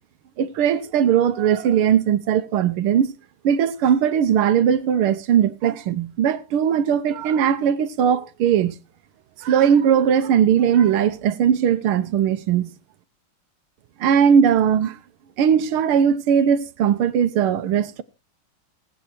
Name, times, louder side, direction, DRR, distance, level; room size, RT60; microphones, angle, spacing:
voice 1, 0.4-3.2 3.4-8.8 9.4-12.7 14.0-15.0 15.4-18.0, right 8 dB, 80° right, 1.8 m, -19 dB
18.0 x 9.0 x 4.3 m
omnidirectional pair, 2.4 m